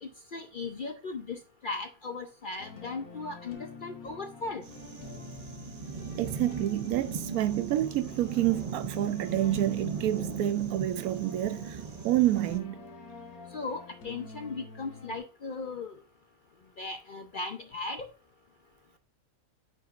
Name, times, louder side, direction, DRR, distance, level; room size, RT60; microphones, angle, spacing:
voice 1, 0.3-1.4 1.6-4.6 13.5-15.9 16.8-18.1, left 3 dB, 55° left, 0.6 m, -37 dB
sound 1, 2.6-15.2, left 4 dB, 80° left, 1.7 m, -48 dB
sound 2, 4.6-12.6, right 5 dB, 70° right, 0.3 m, -39 dB
voice 2, 6.2-12.9, right 13 dB, 85° right, 1.1 m, -28 dB
9.2 x 5.1 x 2.4 m
omnidirectional pair, 1.5 m